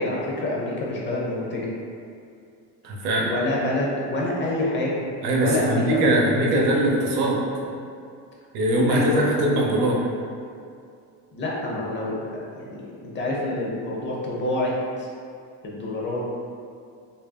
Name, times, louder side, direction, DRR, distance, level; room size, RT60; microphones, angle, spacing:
voice 1, 0.0-1.7 3.2-5.0 5.4-6.6 8.9-9.2 9.9-10.1 11.3-15.1 15.6-16.2, left 1 dB, 30° left, -4 dB, 0.8 m, -27 dB
voice 2, 2.8-3.3 5.2-7.4 8.5-10.0, right 1 dB, 85° right, -2 dB, 0.9 m, -21 dB
5.4 x 2.7 x 2.2 m, 2.4 s
cardioid pair, 140°, 36 cm